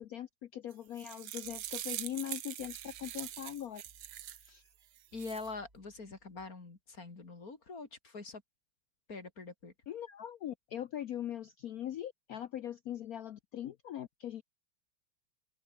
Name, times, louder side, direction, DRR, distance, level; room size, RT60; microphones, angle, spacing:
voice 1, 0.0-3.8 4.4-4.6 9.9-14.4, left 11 dB, 70° left, 0.8 m, -41 dB
sound 1, 0.7-4.5 5.0-5.5, right 12 dB, 75° right, 1.8 m, -43 dB
sound 2, 1.4-6.5, right 1 dB, 25° right, 8.2 m, -66 dB
voice 2, 5.1-8.4 9.1-9.7, left 3 dB, 40° left, 3.6 m, -44 dB
open air
omnidirectional pair, 2.3 m